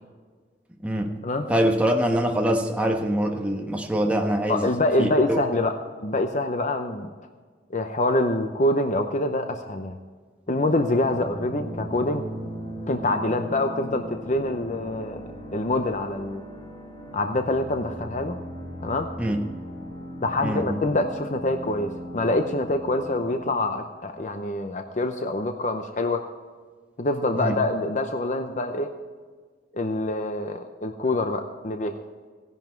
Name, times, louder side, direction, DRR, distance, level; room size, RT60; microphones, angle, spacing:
voice 1, 0.8-1.1 1.5-4.7 5.0-5.4 19.2-19.5 20.4-20.8 27.4-27.6, right 1 dB, 10° right, 1 dB, 1.3 m, -24 dB
voice 2, 4.5-5.7 6.0-7.1 7.7-10.0 10.5-12.3 12.9-15.2 15.5-16.4 17.1-18.4 18.8-19.1 20.2-26.3 27.0-28.9 29.7-32.0, left 2 dB, 45° left, 6 dB, 0.8 m, -25 dB
sound 1, 10.5-23.5, equal, 25° left, 2.2 m, -38 dB
16.5 x 11.0 x 4.6 m, 1.5 s
head